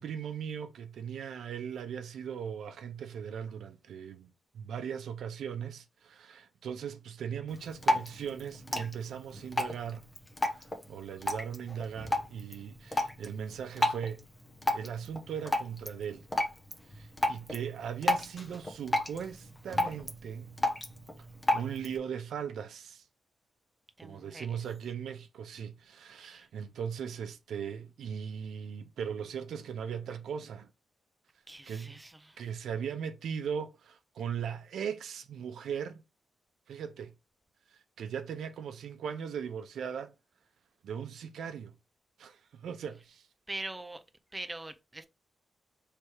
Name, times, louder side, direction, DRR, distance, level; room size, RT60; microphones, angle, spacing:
voice 1, 0.0-10.1 10.5-14.2 14.7-16.3 16.9-20.5 21.5-23.1 24.0-30.7 31.7-32.0 32.4-36.0 36.7-37.1 37.7-40.1 40.8-41.8 42.2-43.3, right 7 dB, 85° right, 0.6 m, -39 dB
Drip, 7.5-22.0, left 1 dB, 15° left, 0.9 m, -34 dB
voice 2, 24.0-24.6 26.3-26.5 31.5-32.4 43.5-44.0 44.3-45.1, right 2 dB, 15° right, 0.6 m, -42 dB
3.3 x 3.0 x 4.7 m
wide cardioid pair, 125°, 0 cm